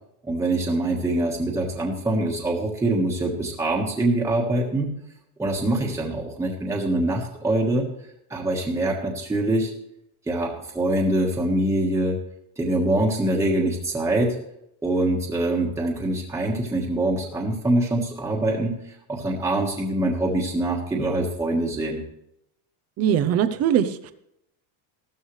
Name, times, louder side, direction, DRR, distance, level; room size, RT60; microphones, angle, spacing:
voice 1, 0.2-4.9 5.4-7.9 8.3-9.7 10.3-12.2 12.6-14.3 14.8-22.0, right 1 dB, 5° right, -2 dB, 1.4 m, -24 dB
voice 2, 23.0-24.1, right 9 dB, 35° right, 11 dB, 0.7 m, -21 dB
14.5 x 13.0 x 3.3 m, 0.77 s
cardioid pair, 160°, 44 cm